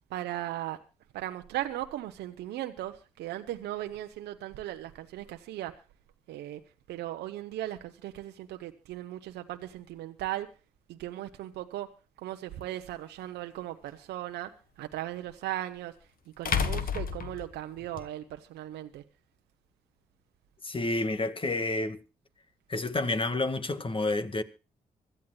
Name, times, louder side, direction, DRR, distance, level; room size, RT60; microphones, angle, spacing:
voice 1, 0.1-0.8 1.1-5.7 6.3-6.6 6.9-10.5 10.9-11.9 12.2-14.5 14.8-15.9 16.4-19.0, right 14 dB, 80° right, 0.9 m, -37 dB
sound 1, 12.6-12.7 15.3-15.4 16.5-18.1, left 7 dB, 60° left, 1.4 m, -30 dB
voice 2, 20.6-22.0 22.7-24.4, left 2 dB, 30° left, 1.8 m, -29 dB
25.0 x 13.0 x 2.3 m
hypercardioid pair, 40°, 17 cm